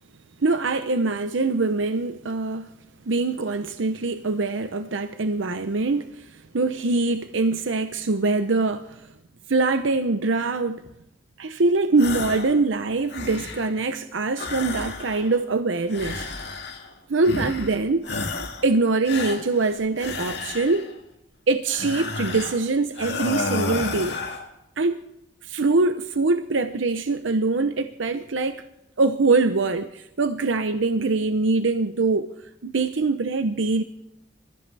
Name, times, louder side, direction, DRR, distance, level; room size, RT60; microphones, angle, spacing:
voice 1, 0.4-2.7 3.1-9.1 9.5-10.8 11.4-16.3 17.1-18.0 18.6-20.9 21.5-24.2 24.8-25.0 25.4-28.6 29.0-32.3 32.6-33.8, right 3 dB, 85° right, 0.7 m, -23 dB
sound 1, 12.0-12.6 12.9-13.8 14.3-15.4 15.9-16.9 17.2-17.8 18.0-18.7 19.0-20.9 21.7-22.6 22.9-24.5, left 3 dB, 60° left, 2.2 m, -31 dB
28.0 x 14.5 x 3.4 m
head